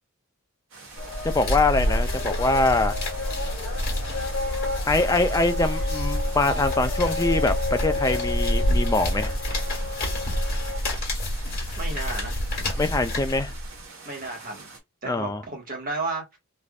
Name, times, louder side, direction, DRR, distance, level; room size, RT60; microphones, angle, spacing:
sound 1, 0.7-14.8, right 4 dB, 65° right, 1.3 m, -45 dB
sound 2, 1.0-10.8, left 1 dB, 65° left, 1.2 m, -29 dB
sound 3, 1.0-13.8, left 1 dB, 40° left, 1.5 m, -30 dB
voice 1, 1.2-2.9 4.9-9.4 12.8-13.5 15.0-15.4, left 2 dB, 15° left, 0.3 m, -24 dB
voice 2, 11.7-12.4 14.0-14.7 15.0-16.4, right 3 dB, 40° right, 1.3 m, -33 dB
3.3 x 2.5 x 2.3 m
head